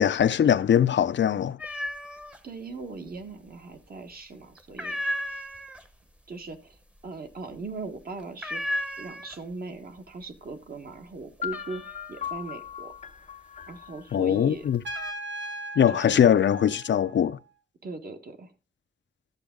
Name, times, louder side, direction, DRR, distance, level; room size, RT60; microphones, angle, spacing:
voice 1, 0.0-1.6 14.1-14.8 15.8-17.4, left 9 dB, 85° left, 0.6 m, -21 dB
sound 1, 1.6-2.4 2.7-3.5 3.9-4.2 4.6-9.7 10.0-10.5 10.9-14.0 14.5-15.1, equal, 5° right, 0.8 m, -35 dB
voice 2, 2.4-5.0 6.3-12.9 13.7-14.7 15.9-16.2 17.8-18.5, right 3 dB, 55° right, 1.4 m, -39 dB
sound 2, 11.4-15.3, left 9 dB, 40° left, 0.4 m, -39 dB
Trumpet, 14.8-17.5, right 1 dB, 90° right, 1.5 m, -38 dB
12.0 x 7.1 x 3.7 m
wide cardioid pair, 130°, 18 cm